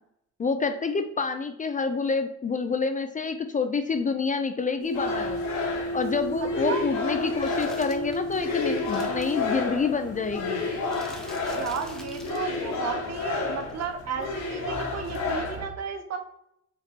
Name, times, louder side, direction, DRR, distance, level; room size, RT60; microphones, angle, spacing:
voice 1, 0.4-5.4 5.9-10.6, left 4 dB, 25° left, 8 dB, 0.4 m, -28 dB
sound 1, 4.8-12.3, equal, 85° right, 1.2 m, -34 dB
sound 2, 4.9-15.7, left 3 dB, 65° left, 1.2 m, -31 dB
sound 3, 7.4-9.4 10.8-12.6 13.6-13.7, equal, ahead, 0.9 m, -47 dB
voice 2, 11.5-16.2, right 6 dB, 60° right, 6 dB, 0.8 m, -33 dB
4.7 x 2.9 x 3.6 m, 0.77 s
cardioid pair, 90°, 30 cm